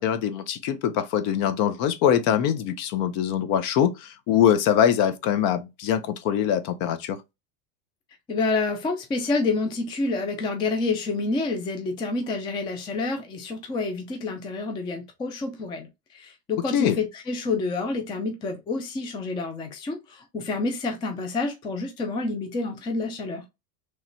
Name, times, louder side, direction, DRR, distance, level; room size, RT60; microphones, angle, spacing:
voice 1, 0.0-7.2 16.7-17.0, left 9 dB, 50° left, 0.7 m, -23 dB
voice 2, 8.3-23.4, left 3 dB, 10° left, 0.3 m, -28 dB
3.2 x 2.4 x 4.2 m
supercardioid pair, 115°, 46 cm